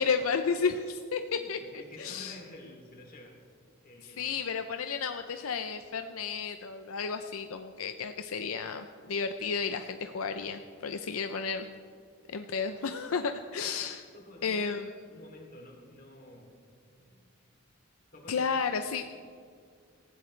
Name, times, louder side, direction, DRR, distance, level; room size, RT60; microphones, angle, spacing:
voice 1, 0.0-1.6 2.0-2.4 4.2-11.7 12.3-14.0 14.4-14.9 18.3-19.0, left 5 dB, 80° left, 7 dB, 0.6 m, -32 dB
voice 2, 1.3-3.5 3.8-4.3 13.2-13.3 13.9-14.8 15.1-16.6 16.9-17.3 18.1-18.4 18.9-19.0, left 1 dB, 45° left, 0 dB, 2.9 m, -51 dB
18.0 x 15.5 x 3.3 m, 2.2 s
head